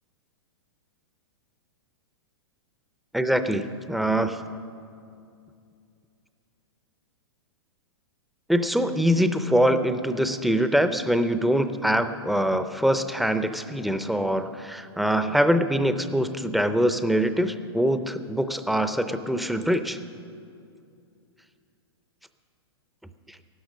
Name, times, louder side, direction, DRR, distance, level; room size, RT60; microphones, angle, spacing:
voice 1, 3.1-4.4 8.5-20.0, equal, ahead, 10 dB, 0.5 m, -24 dB
15.5 x 12.0 x 6.2 m, 2.5 s
hypercardioid pair, 130°, 14 cm